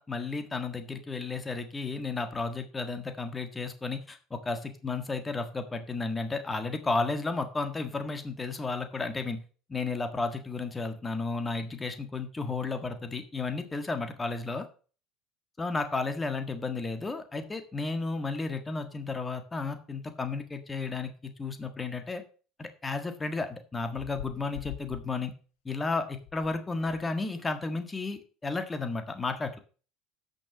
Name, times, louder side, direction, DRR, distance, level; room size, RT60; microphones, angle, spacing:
voice 1, 0.0-9.4 9.7-14.7 15.6-22.2 22.6-25.3 25.6-29.6, left 3 dB, 15° left, 8 dB, 1.5 m, -33 dB
sound 1, 23.9-25.1 26.2-26.5 26.8-27.0, left 14 dB, 80° left, 1.3 m, -44 dB
8.4 x 6.4 x 6.1 m, 0.37 s
supercardioid pair, 120°, 0 cm